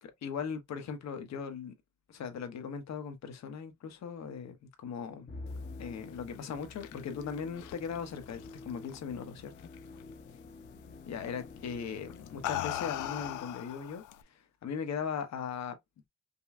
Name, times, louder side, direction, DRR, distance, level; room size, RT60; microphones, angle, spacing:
voice 1, 0.0-1.7 2.1-5.3 5.8-9.7 11.1-15.8, left 6 dB, 60° left, 1.2 m, -39 dB
Musical instrument, 5.3-13.8, left 3 dB, 35° left, 1.0 m, -48 dB
sound 1, 6.3-9.2 9.6-10.0 11.2-11.5 12.1-14.2, left 13 dB, 80° left, 0.6 m, -39 dB
5.4 x 2.3 x 2.6 m
cardioid pair, 90°, 30 cm